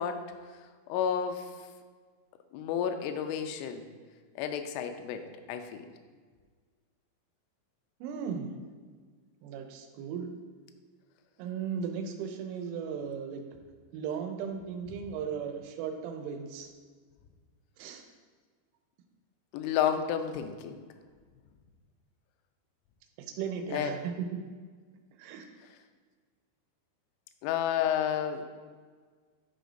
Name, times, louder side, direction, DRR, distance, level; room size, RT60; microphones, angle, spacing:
voice 1, 0.0-1.5 2.5-3.9 4.4-5.9 19.5-20.8 23.7-24.0 27.4-28.5, left 8 dB, 85° left, 6 dB, 3.0 m, -31 dB
voice 2, 8.0-8.6 9.4-10.3 11.4-13.4 13.9-16.7 17.8-18.0 23.4-24.3 25.2-25.5, right 7 dB, 90° right, 4 dB, 3.1 m, -36 dB
11.5 x 4.9 x 2.6 m, 1.5 s
omnidirectional pair, 5.6 m